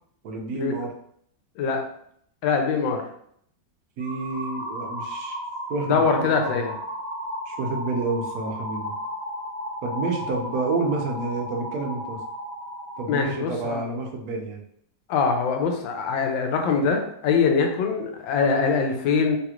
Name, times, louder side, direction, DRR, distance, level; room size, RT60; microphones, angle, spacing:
voice 1, 0.2-0.9 4.0-5.4 5.7-6.5 7.5-8.9 9.8-12.2 13.0-14.6, right 3 dB, 65° right, 1 dB, 1.0 m, -29 dB
voice 2, 2.4-3.0 5.8-6.7 13.1-13.8 15.1-19.4, left 5 dB, 85° left, 3 dB, 1.3 m, -23 dB
sound 1, 4.0-13.3, equal, 50° left, 1.8 m, -34 dB
3.3 x 2.9 x 2.4 m, 0.67 s
omnidirectional pair, 2.0 m